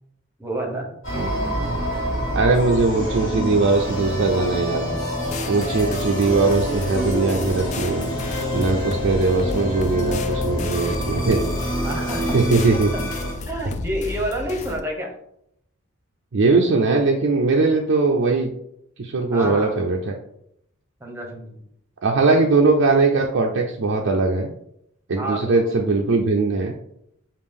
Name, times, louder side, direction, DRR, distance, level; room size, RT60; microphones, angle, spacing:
voice 1, 0.4-1.0 11.8-12.4 12.9-13.0 13.5-15.1 19.3-19.8 21.0-21.6 25.1-25.7, right 1 dB, 10° right, 2 dB, 0.8 m, -29 dB
sound 1, 1.0-13.3, equal, 65° left, 1.6 m, -26 dB
voice 2, 2.3-4.9 5.5-8.1 8.5-11.5 12.3-12.9 16.3-18.5 19.0-20.2 22.0-24.5 25.1-26.7, right 3 dB, 60° right, 0 dB, 0.5 m, -20 dB
sound 2, 5.2-14.8, left 3 dB, 35° left, 0.3 m, -33 dB
5.1 x 2.4 x 3.5 m, 0.75 s
head